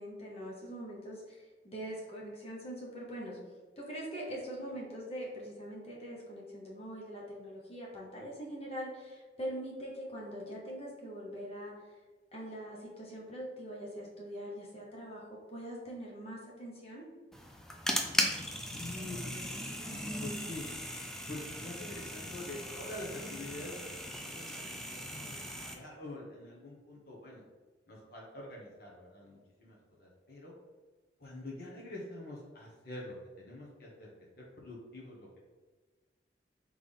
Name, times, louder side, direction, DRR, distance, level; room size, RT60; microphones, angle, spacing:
voice 1, 0.0-3.4 3.8-11.9 12.3-17.1, equal, 35° left, -4 dB, 1.1 m, -43 dB
sound 1, 17.3-25.7, equal, 5° left, 0.4 m, -38 dB
voice 2, 18.7-20.6 21.3-23.8 24.2-27.4 27.9-30.5 31.2-35.3, left 1 dB, 55° left, -3 dB, 1.2 m, -46 dB
4.0 x 3.4 x 3.5 m, 1.4 s
head